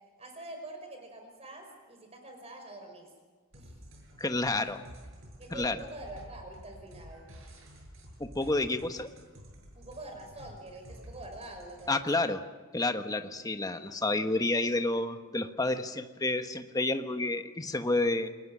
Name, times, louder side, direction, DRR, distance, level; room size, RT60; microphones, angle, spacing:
voice 1, 0.2-3.1 3.5-3.8 4.4-4.7 5.4-7.3 9.7-12.3, right 1 dB, 30° right, 4 dB, 5.4 m, -46 dB
sound 1, 3.5-11.9, equal, 65° right, 7.8 m, -50 dB
voice 2, 4.2-4.8 5.5-5.8 8.2-9.1 11.9-12.4 12.7-18.3, left 2 dB, 15° left, 8 dB, 1.2 m, -30 dB
29.5 x 21.0 x 6.2 m, 1.4 s
head